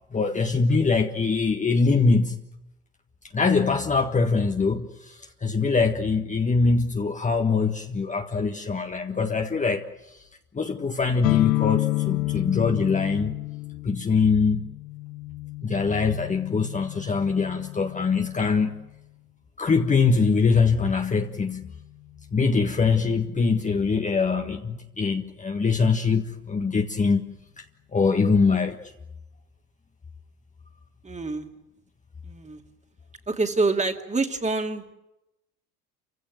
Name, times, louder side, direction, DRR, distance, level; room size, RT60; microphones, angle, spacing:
voice 1, 0.1-2.4 3.3-10.2 10.5-13.3 13.8-14.7 15.6-18.7 19.6-21.7 22.3-27.2 27.6-27.7 27.9-28.8, left 4 dB, 15° left, 1.5 m, -23 dB
sound 1, 11.2-18.8, left 20 dB, 65° left, 1.3 m, -30 dB
voice 2, 31.0-31.5 32.2-32.6 33.3-34.9, right 3 dB, 15° right, 2.4 m, -26 dB
29.5 x 16.0 x 9.3 m
figure-of-eight pair, 75°, 45 cm